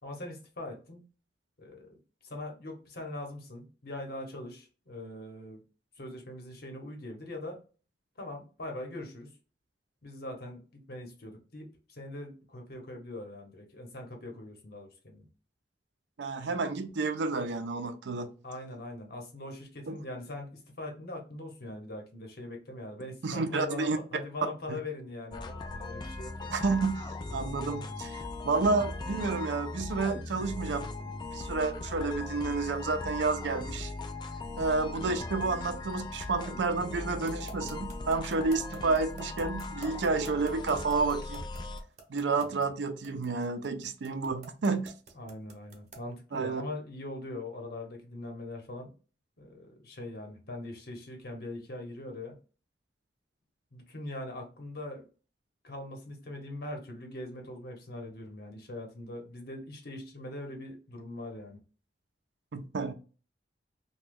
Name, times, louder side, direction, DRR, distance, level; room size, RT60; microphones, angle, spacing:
voice 1, 0.0-1.0 1.6-2.0 2.2-5.6 6.0-7.6 8.2-9.3 10.0-15.3 18.4-26.6 42.4-42.7 45.1-48.9 49.4-52.4 53.7-55.1 55.6-61.6, left 1 dB, 60° left, 2 dB, 1.0 m, -42 dB
voice 2, 16.2-18.3 19.9-20.0 23.2-24.0 24.7-24.8 26.5-33.9 34.6-41.4 42.1-44.9 46.3-46.6 62.5-62.9, right 3 dB, 80° right, 8 dB, 0.5 m, -30 dB
sound 1, 25.3-41.8, left 2 dB, 25° left, 0.3 m, -39 dB
sound 2, 37.3-46.1, right 3 dB, 40° right, 0.8 m, -48 dB
2.9 x 2.3 x 3.6 m, 0.35 s
head